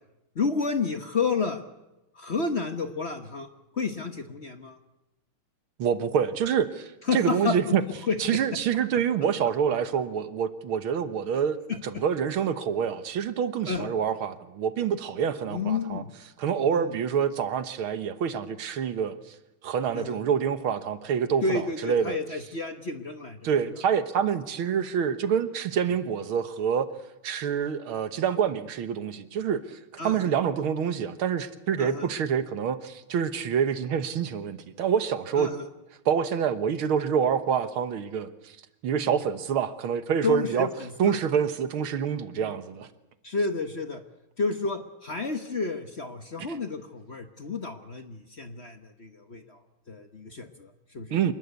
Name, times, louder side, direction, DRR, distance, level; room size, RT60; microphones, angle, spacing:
voice 1, 0.3-1.6 2.1-3.5 3.7-4.8 7.1-7.8 8.1-8.4 11.7-12.0 13.7-13.9 15.5-16.1 16.7-16.9 19.9-20.2 21.4-23.4 30.0-30.3 31.8-32.1 35.4-35.7 39.1-39.2 40.2-41.2 42.4-42.5 43.2-44.0 44.4-49.6 49.9-51.2, left 4 dB, 35° left, 1.2 m, -30 dB
voice 2, 5.8-7.8 8.2-11.6 11.8-16.0 16.4-19.4 19.6-22.2 23.4-26.9 27.2-29.8 30.0-35.5 36.1-38.5 38.8-40.7 41.0-42.9 51.1-51.3, right 7 dB, 75° right, 2.1 m, -27 dB
27.0 x 21.0 x 8.3 m
omnidirectional pair, 2.3 m